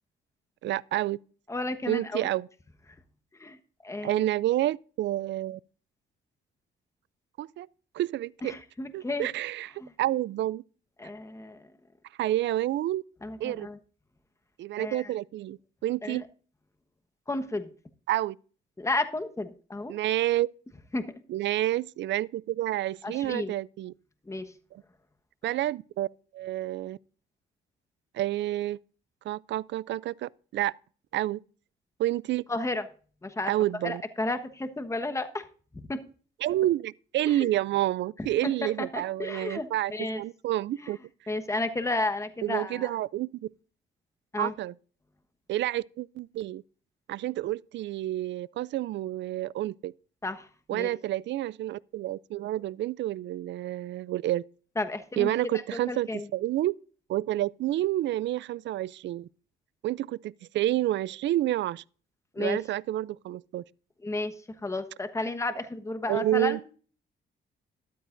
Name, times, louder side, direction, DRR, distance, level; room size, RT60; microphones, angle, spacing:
voice 1, 0.6-1.2 1.9-2.5 4.0-5.6 7.4-7.7 7.9-8.6 8.9-9.7 10.0-10.6 12.2-13.0 13.4-13.7 14.6-16.2 18.1-18.4 19.9-20.5 21.3-23.9 24.7-24.8 25.4-26.1 26.3-27.0 28.1-28.8 29.2-30.7 31.1-31.4 32.0-32.4 33.5-34.0 36.4-41.0 42.4-43.3 44.4-44.7 45.5-46.6 47.1-49.9 50.7-54.4 55.2-56.7 57.1-59.3 59.8-61.8 62.4-63.6 66.1-66.6, right 14 dB, 70° right, 0.4 m, -29 dB
voice 2, 1.5-2.3 3.4-3.6 3.8-4.3 8.4-9.3 9.8-9.9 11.0-11.6 13.2-13.8 14.8-15.1 16.0-16.2 17.3-17.7 18.8-19.9 20.9-21.1 23.0-23.5 24.3-24.5 32.5-32.8 33.2-33.5 33.8-35.4 35.7-36.0 37.3-37.5 38.6-40.2 40.8-40.9 41.3-42.9 44.3-44.5 50.2-50.9 54.8-55.3 55.7-56.3 62.3-62.6 64.0-64.3 64.6-66.6, left 2 dB, 15° left, 1.2 m, -32 dB
13.0 x 12.5 x 2.6 m
cardioid pair, 80°, 19 cm